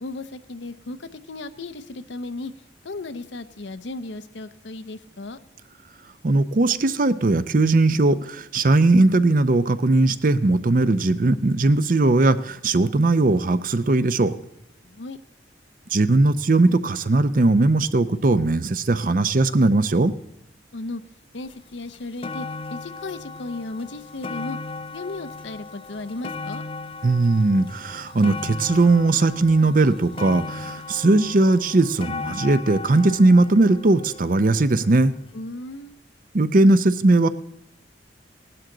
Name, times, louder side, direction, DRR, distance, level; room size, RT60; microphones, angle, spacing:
voice 1, 0.0-2.5 2.8-5.4 14.8-15.2 20.7-21.0 21.3-24.6 24.9-26.6 35.3-36.0, left 2 dB, 80° left, 11 dB, 0.8 m, -35 dB
voice 2, 6.2-14.3 15.9-20.1 27.0-35.1 36.3-37.3, right 2 dB, 50° right, 13 dB, 0.6 m, -19 dB
sound 1, 21.5-21.6 21.9-35.1 35.9-36.0, left 3 dB, 30° left, 0.4 m, -36 dB
16.5 x 12.0 x 3.9 m, 0.84 s
head